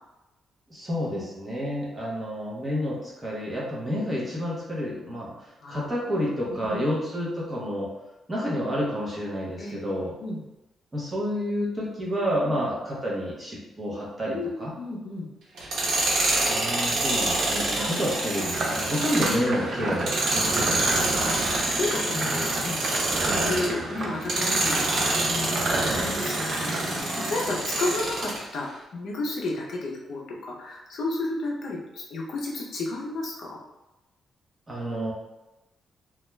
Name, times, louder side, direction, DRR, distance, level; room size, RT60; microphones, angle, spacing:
voice 1, 0.7-7.9 8.3-10.1 10.9-14.7 16.3-21.3 34.7-35.1, equal, 15° right, -6 dB, 0.7 m, -29 dB
voice 2, 5.6-6.0 6.4-6.8 9.6-9.8 10.2-10.4 12.4-12.6 14.3-15.3 17.8-17.9 21.2-22.8 23.3-33.6, left 2 dB, 60° left, -2 dB, 0.5 m, -33 dB
Tools, 15.6-23.8 24.2-28.4, right 2 dB, 90° right, 0.8 m, -27 dB
sound 1, 18.5-27.0, right 2 dB, 45° right, 0.4 m, -31 dB
2.3 x 2.1 x 3.0 m, 0.99 s
wide cardioid pair, 175°, 0 cm